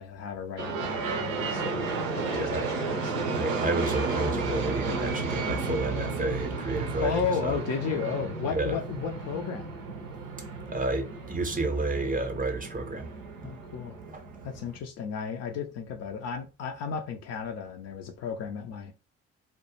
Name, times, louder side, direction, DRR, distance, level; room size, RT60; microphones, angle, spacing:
voice 1, 0.0-1.9 2.2-3.3 7.0-9.7 12.7-12.8 13.4-14.0 14.4-18.9, left 6 dB, 45° left, 0.4 m, -34 dB
sound 1, 0.6-14.8, right 4 dB, 80° right, 0.5 m, -33 dB
voice 2, 2.3-2.7 3.3-7.6 8.5-8.8 10.7-13.1 14.1-14.2, right 2 dB, 20° right, 0.6 m, -31 dB
2.2 x 2.1 x 2.8 m
figure-of-eight pair, 45°, 38 cm